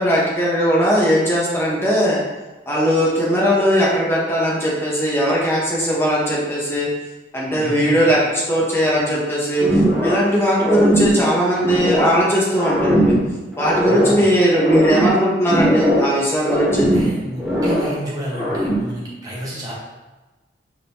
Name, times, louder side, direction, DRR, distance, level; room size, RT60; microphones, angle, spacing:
voice 1, 0.0-2.2 2.7-6.9 7.3-13.1 13.6-16.9, equal, 15° left, -5 dB, 1.1 m, -18 dB
voice 2, 7.5-8.1 13.8-14.3 16.7-19.7, equal, 20° right, -6 dB, 1.2 m, -31 dB
sound 1, 9.6-10.3 10.6-12.2 12.6-14.2 14.6-16.2 16.4-18.0 18.3-19.0, equal, ahead, 0.7 m, -19 dB
5.0 x 3.6 x 2.8 m, 1.2 s
head